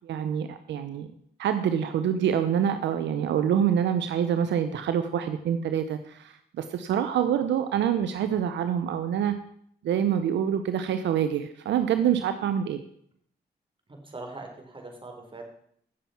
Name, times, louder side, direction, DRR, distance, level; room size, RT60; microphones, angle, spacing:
voice 1, 0.0-1.1 1.4-9.4 9.8-12.8, right 9 dB, 80° right, 9 dB, 0.8 m, -26 dB
voice 2, 14.0-15.4, right 2 dB, 30° right, 3 dB, 4.4 m, -41 dB
16.5 x 7.2 x 5.9 m, 0.67 s
cardioid pair, 65°, 18 cm